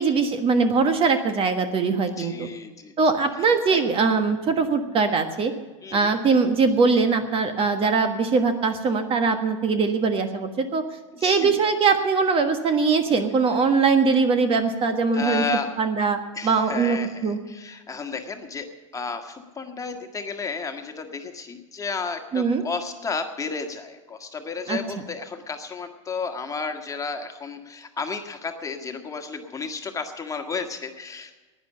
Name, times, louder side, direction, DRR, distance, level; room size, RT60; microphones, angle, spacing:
voice 1, 0.0-2.5 3.0-5.5 5.9-10.8 11.2-15.4 15.8-17.4 22.3-22.6 24.7-24.8, right 4 dB, 35° right, 8 dB, 1.4 m, -21 dB
voice 2, 2.2-2.9 3.7-3.8 5.8-6.1 11.2-11.6 15.1-15.7 16.3-18.7 18.9-31.3, left 4 dB, 20° left, 5 dB, 1.7 m, -32 dB
11.0 x 9.8 x 9.8 m, 1.3 s
hypercardioid pair, 95°, 16 cm